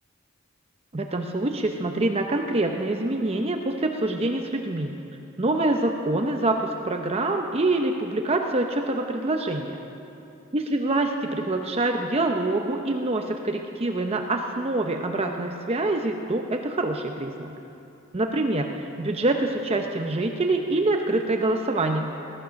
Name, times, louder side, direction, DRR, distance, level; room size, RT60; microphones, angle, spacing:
voice 1, 0.9-5.0 5.4-9.8 10.5-17.5 18.1-22.2, right 2 dB, 30° right, 3 dB, 0.7 m, -25 dB
18.5 x 12.0 x 6.4 m, 2.9 s
head